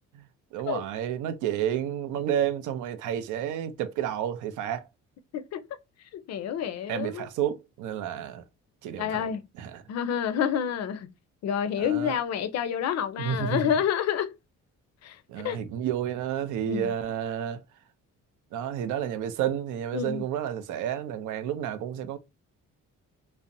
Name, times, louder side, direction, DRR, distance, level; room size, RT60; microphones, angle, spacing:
voice 1, 0.5-4.9 6.9-8.4 8.8-9.3 9.6-9.8 11.8-12.2 13.2-13.7 15.3-17.6 18.5-22.2, right 9 dB, 85° right, 0.5 m, -30 dB
voice 2, 6.1-7.3 9.0-9.4 9.9-11.1 11.4-14.3 15.0-15.2 15.4-15.6 16.7-16.9 19.9-20.2, left 8 dB, 60° left, 0.4 m, -28 dB
2.6 x 2.0 x 2.5 m
cardioid pair, 90°, 30 cm